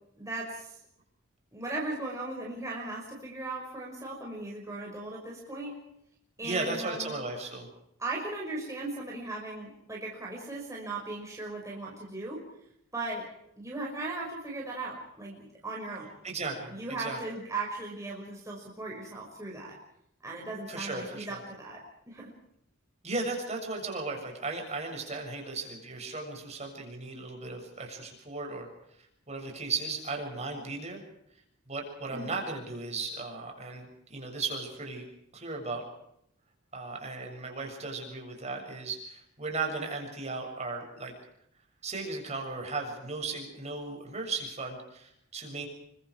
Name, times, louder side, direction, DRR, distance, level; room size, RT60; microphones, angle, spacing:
voice 1, 0.2-0.8 1.5-5.8 6.4-7.1 8.0-12.4 12.9-13.3 13.6-16.1 16.4-19.8 20.2-22.3 32.1-32.4, right 2 dB, 15° right, -3 dB, 5.9 m, -38 dB
voice 2, 6.4-7.7 16.2-17.2 20.7-21.4 23.0-28.7 29.3-31.0 31.7-35.0 35.3-35.8 36.7-41.1 41.8-45.7, right 3 dB, 30° right, 2 dB, 6.9 m, -36 dB
29.0 x 25.0 x 4.8 m, 0.77 s
head